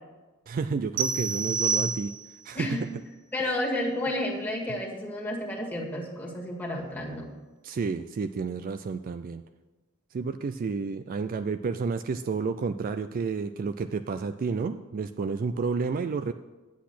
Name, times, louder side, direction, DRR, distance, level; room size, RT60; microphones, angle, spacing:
voice 1, 0.5-2.1 2.4-2.9 7.6-9.4 10.1-16.3, right 4 dB, 40° right, 10 dB, 0.3 m, -30 dB
sound 1, 1.0-2.5, right 5 dB, 55° right, 0.9 m, -28 dB
voice 2, 3.3-7.3, left 1 dB, 10° left, -2 dB, 1.9 m, -31 dB
10.5 x 8.3 x 5.9 m, 1.2 s
head